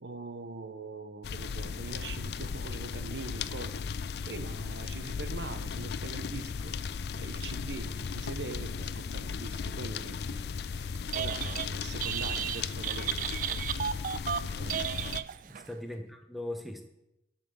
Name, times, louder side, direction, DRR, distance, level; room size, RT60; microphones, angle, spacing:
voice 1, 0.0-3.9 4.3-10.4 10.7-13.3 14.4-14.8, right 3 dB, 85° right, 10 dB, 0.9 m, -43 dB
sound 1, 1.2-15.2, left 5 dB, 70° left, 0.4 m, -36 dB
Telephone, 10.9-11.7 12.0-15.7, right 9 dB, 50° right, 0.3 m, -34 dB
voice 2, 15.4-16.9, left 1 dB, ahead, 4 dB, 1.0 m, -39 dB
11.0 x 5.6 x 6.9 m, 0.89 s
head